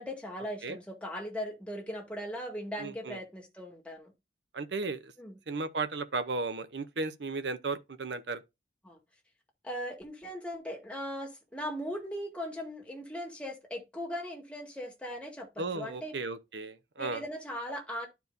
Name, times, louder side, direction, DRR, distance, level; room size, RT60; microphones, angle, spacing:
voice 1, 0.0-4.1 5.2-5.4 8.8-9.0 9.6-16.1 17.0-18.1, equal, 5° left, 1.9 m, -39 dB
voice 2, 2.8-3.2 4.5-5.1 5.5-8.4 15.6-17.2, right 3 dB, 85° right, 0.8 m, -35 dB
12.0 x 4.6 x 2.6 m
head